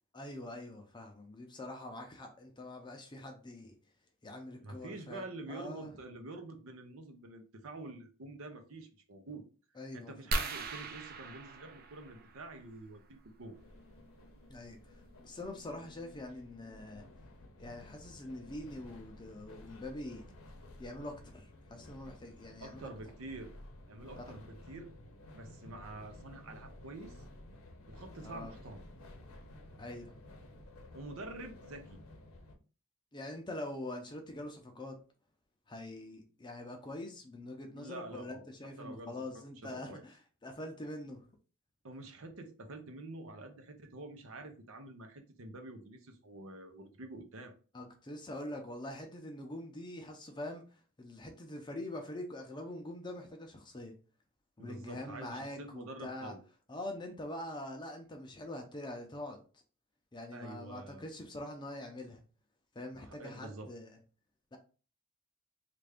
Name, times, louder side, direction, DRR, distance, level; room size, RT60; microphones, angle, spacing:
voice 1, 0.1-3.8 4.2-5.9 9.8-10.1 14.5-17.0 17.6-20.2 20.8-22.9 24.2-24.4 28.2-28.5 29.8-30.2 33.1-34.9 35.7-41.2 47.7-50.6 51.0-53.9 54.6-56.4 56.7-59.4 60.1-62.2 62.8-64.0 64.5-64.6, left 1 dB, 20° left, 0.5 m, -44 dB
voice 2, 4.6-9.4 9.9-13.6 22.6-23.5 23.9-24.9 25.3-27.2 27.9-28.8 30.9-32.0 37.7-38.4 38.8-39.1 39.6-40.0 41.8-47.5 54.6-56.4 60.3-61.1 63.0-63.7, right 2 dB, 75° right, 0.7 m, -47 dB
sound 1, 10.3-12.7 14.3-14.5 15.1-15.2 15.4-15.7, right 3 dB, 45° right, 0.5 m, -38 dB
sound 2, 13.5-32.6, left 1 dB, 80° left, 0.7 m, -53 dB
3.2 x 2.5 x 3.4 m
head